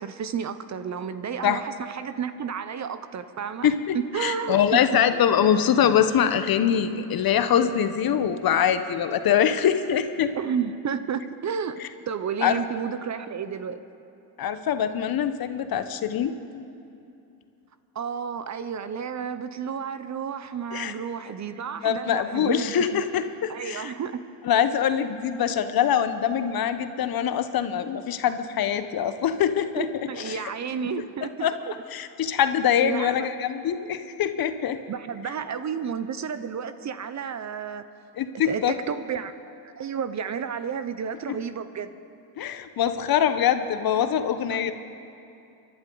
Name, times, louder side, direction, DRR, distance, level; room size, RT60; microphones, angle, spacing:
voice 1, 0.0-5.2 10.3-11.8 12.1-13.8 17.9-23.0 23.5-24.2 29.8-31.8 32.8-33.3 34.9-37.8 38.4-39.3 39.8-41.9 44.5-44.7, right 7 dB, 35° right, 12 dB, 0.7 m, -31 dB
voice 2, 3.6-10.3 11.8-11.9 12.4-12.6 14.4-16.6 20.7-20.9 21.8-23.9 24.4-29.9 30.2-30.4 31.4-34.8 38.2-38.7 41.3-41.4 42.4-44.7, left 9 dB, 45° left, 10 dB, 0.9 m, -24 dB
28.0 x 11.5 x 3.9 m, 2.7 s
supercardioid pair, 85°, 48 cm